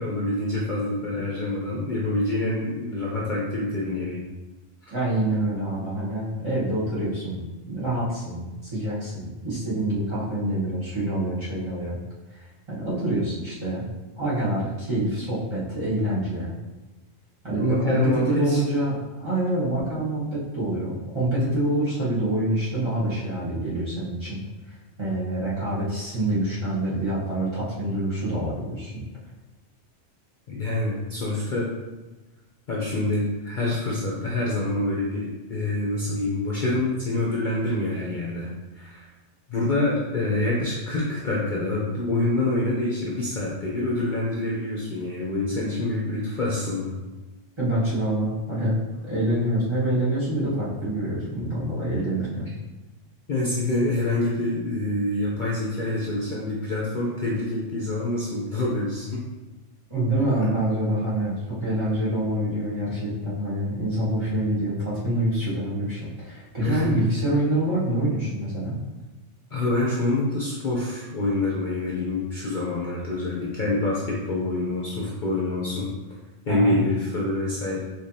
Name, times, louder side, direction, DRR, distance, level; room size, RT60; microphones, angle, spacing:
voice 1, 0.0-4.2 17.5-18.6 30.5-31.7 32.7-38.5 38.7-39.1 39.5-46.9 53.3-59.2 66.6-66.9 69.5-75.9 76.5-77.8, left 2 dB, 45° left, -5 dB, 0.8 m, -26 dB
voice 2, 4.9-12.0 12.3-13.8 14.2-16.5 17.4-24.4 25.0-29.1 47.6-48.8 49.0-52.5 59.9-68.8 76.5-76.8, right 1 dB, 25° right, -10 dB, 1.3 m, -26 dB
5.0 x 3.2 x 2.8 m, 1.1 s
omnidirectional pair, 1.3 m